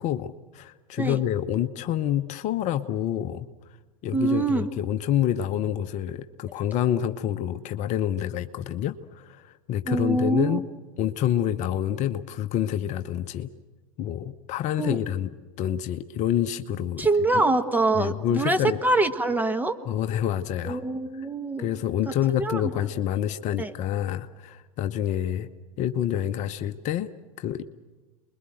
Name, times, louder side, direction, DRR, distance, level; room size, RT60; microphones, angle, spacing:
voice 1, 0.0-3.5 4.0-10.6 11.0-13.5 14.0-15.3 15.6-17.1 17.3-17.4 17.9-18.8 19.9-20.8 21.1-21.3 21.6-25.5 25.8-27.1 27.4-27.6, left 11 dB, 40° left, 10 dB, 0.9 m, -27 dB
voice 2, 4.1-4.7 9.8-10.6 14.8-15.0 17.0-19.8 20.6-21.7 22.4-22.7 23.6-23.7, right 2 dB, 10° right, 8 dB, 1.5 m, -24 dB
28.5 x 22.0 x 7.8 m, 1.3 s
hypercardioid pair, 95°, 19 cm